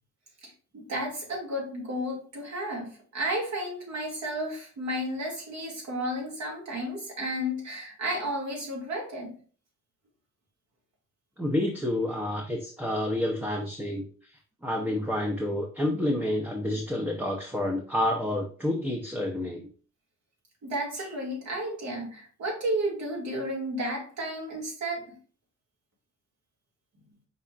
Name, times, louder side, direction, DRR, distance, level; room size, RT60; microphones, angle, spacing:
voice 1, 0.7-9.4 20.6-25.1, equal, 65° right, -2 dB, 2.5 m, -32 dB
voice 2, 11.4-14.0 14.6-19.7, left 1 dB, 5° right, 0 dB, 0.7 m, -29 dB
5.5 x 3.6 x 2.5 m, 0.41 s
cardioid pair, 90°, 30 cm